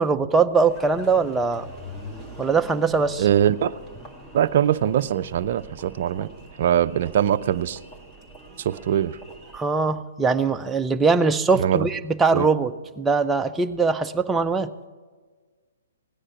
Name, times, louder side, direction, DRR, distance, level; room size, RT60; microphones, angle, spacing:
voice 1, 0.0-1.7 2.4-3.3 9.5-14.7, right 4 dB, 10° right, 7 dB, 0.6 m, -21 dB
Engine, 0.7-9.6, equal, 15° left, 2.1 m, -43 dB
voice 2, 3.2-3.7 4.3-6.3 6.6-7.8 8.6-9.2 11.6-11.8 12.3-12.5, right 10 dB, 50° right, 10 dB, 0.5 m, -22 dB
17.0 x 10.0 x 5.9 m, 1.4 s
hypercardioid pair, 130°, 0 cm